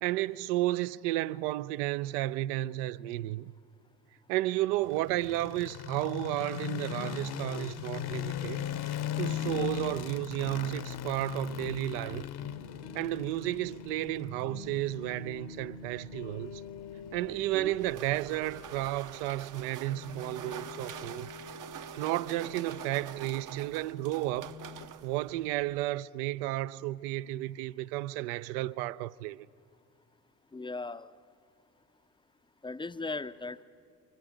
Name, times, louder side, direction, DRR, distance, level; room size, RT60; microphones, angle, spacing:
voice 1, 0.0-3.5 4.3-8.6 9.2-12.3 12.9-16.6 17.1-21.3 22.0-24.6 25.0-29.5, right 16 dB, 70° right, 0.6 m, -32 dB
sound 1, 4.8-19.0, left 11 dB, 50° left, 0.9 m, -39 dB
sound 2, 12.4-24.9, left 3 dB, 85° left, 1.8 m, -48 dB
sound 3, 17.1-25.9, right 10 dB, 40° right, 0.7 m, -46 dB
voice 2, 30.5-31.1 32.6-33.6, left 3 dB, 10° left, 0.5 m, -38 dB
25.0 x 24.0 x 5.1 m
hypercardioid pair, 50°, 49 cm